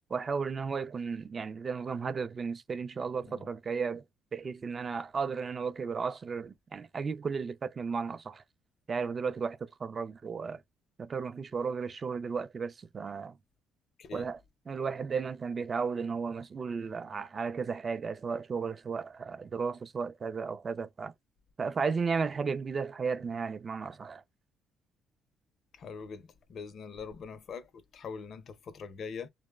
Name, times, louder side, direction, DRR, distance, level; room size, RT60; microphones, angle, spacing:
voice 1, 0.1-4.0 4.3-8.4 8.9-10.6 11.0-13.4 14.1-14.4 14.7-21.1 21.6-24.2, right 5 dB, 35° right, 0.3 m, -34 dB
voice 2, 25.7-29.3, left 5 dB, 55° left, 0.5 m, -43 dB
2.9 x 2.0 x 2.2 m
cardioid pair, 100°, 0 cm